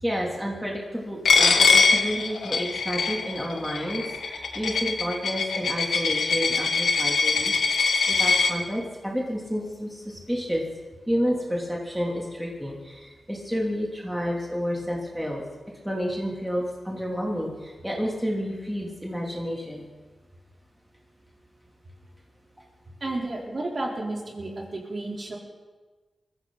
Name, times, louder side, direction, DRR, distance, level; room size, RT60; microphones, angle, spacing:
voice 1, 0.0-7.6 8.1-10.6 11.1-15.4 15.8-19.9, equal, 5° right, -2 dB, 3.0 m, -30 dB
Coin (dropping), 1.3-8.5, left 4 dB, 85° left, 1.4 m, -22 dB
voice 2, 23.0-25.4, right 2 dB, 45° right, -1 dB, 3.6 m, -32 dB
21.0 x 14.5 x 4.0 m, 1.3 s
cardioid pair, 65°, 0 cm